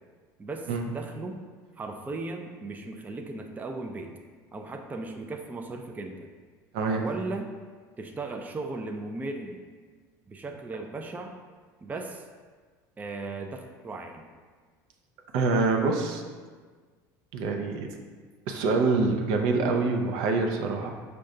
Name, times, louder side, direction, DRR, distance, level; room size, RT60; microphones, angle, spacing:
voice 1, 0.4-1.4 1.8-4.1 4.5-6.3 7.0-7.5 8.0-9.6 10.3-11.4 11.8-12.3 13.0-14.3, right 3 dB, 15° right, 4 dB, 0.4 m, -37 dB
voice 2, 6.7-7.1 15.3-16.2 17.3-17.9 18.5-20.9, right 3 dB, 70° right, 3 dB, 0.5 m, -25 dB
5.1 x 2.2 x 3.7 m, 1.5 s
supercardioid pair, 90°, 10 cm